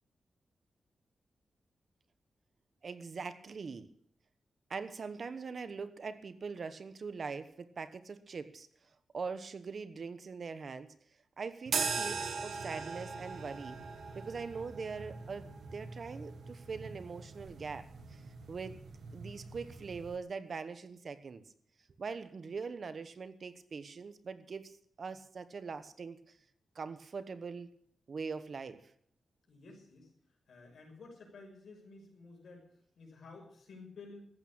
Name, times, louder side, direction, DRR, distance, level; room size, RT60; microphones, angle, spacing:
voice 1, 2.8-3.9 4.7-8.7 9.1-10.9 11.4-13.8 14.1-18.2 18.5-18.8 19.1-21.4 22.0-26.2 26.7-27.7 28.1-28.8, right 5 dB, 50° right, 12 dB, 1.1 m, -42 dB
sound 1, 11.7-20.2, right 5 dB, 75° right, 1.6 m, -41 dB
voice 2, 29.5-30.1 30.5-32.7 33.0-34.2, left 3 dB, 70° left, 1 dB, 6.1 m, -52 dB
14.5 x 8.8 x 8.8 m, 0.65 s
wide cardioid pair, 115°, 0 cm